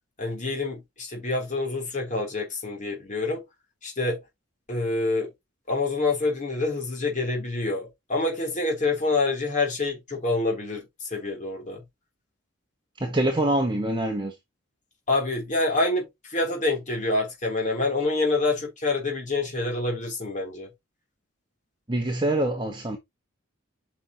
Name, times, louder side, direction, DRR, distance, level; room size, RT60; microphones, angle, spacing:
voice 1, 0.2-3.4 3.8-4.2 4.7-5.3 5.7-11.8 15.1-20.7, left 2 dB, 40° left, 3.4 m, -27 dB
voice 2, 13.0-14.4 21.9-23.0, right 1 dB, 25° right, 1.2 m, -25 dB
8.8 x 5.7 x 3.0 m
head